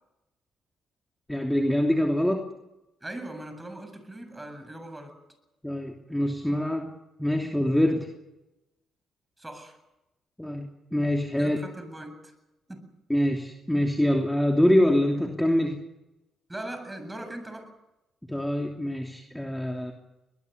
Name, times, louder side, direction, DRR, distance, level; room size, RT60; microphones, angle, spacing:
voice 1, 1.3-2.5 5.6-6.9 7.2-8.1 10.4-11.6 13.1-15.8 18.3-19.9, left 1 dB, 5° left, 2 dB, 3.0 m, -25 dB
voice 2, 3.0-5.2 9.4-9.8 11.4-12.3 12.7-12.9 16.5-17.7, right 1 dB, 15° right, 8 dB, 7.8 m, -40 dB
22.5 x 21.0 x 6.8 m, 0.96 s
hypercardioid pair, 45°, 0 cm